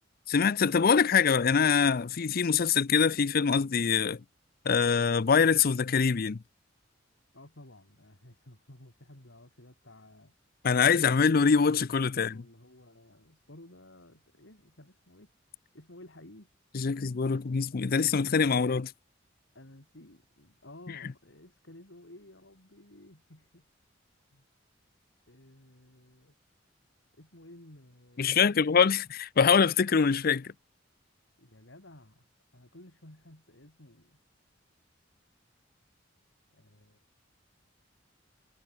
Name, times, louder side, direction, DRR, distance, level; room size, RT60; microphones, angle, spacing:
voice 1, 0.3-4.2 4.7-6.4 10.6-12.3 16.7-18.9 28.2-30.5, left 6 dB, 50° left, 0.5 m, -24 dB
voice 2, 7.3-10.3 12.1-15.3 15.7-16.5 19.5-23.7 24.3-24.5 25.3-26.3 27.2-28.9 31.4-34.2 36.5-37.0, left 1 dB, 70° left, 4.1 m, -54 dB
head